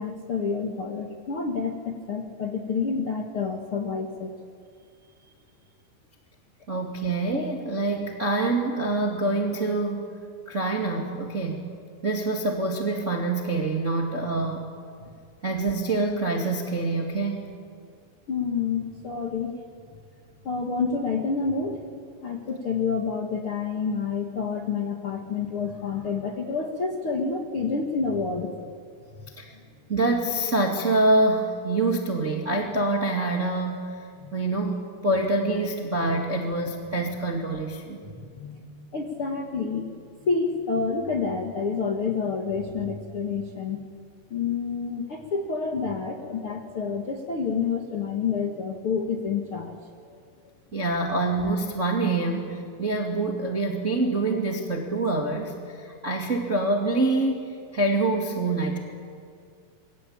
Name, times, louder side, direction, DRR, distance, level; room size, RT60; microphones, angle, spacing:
voice 1, 0.0-4.3 18.3-19.5 20.4-21.8 22.2-28.6 34.2-34.3 38.1-38.6 38.9-39.9 40.2-43.8 44.3-49.7 50.1-50.2, left 5 dB, 60° left, 3 dB, 1.4 m, -28 dB
voice 2, 6.7-10.2 10.4-11.6 12.0-14.6 15.4-17.6 29.4-29.5 29.9-38.1 50.7-58.8, right 2 dB, 35° right, 1 dB, 1.1 m, -26 dB
27.5 x 23.0 x 8.8 m, 2.3 s
omnidirectional pair, 5.6 m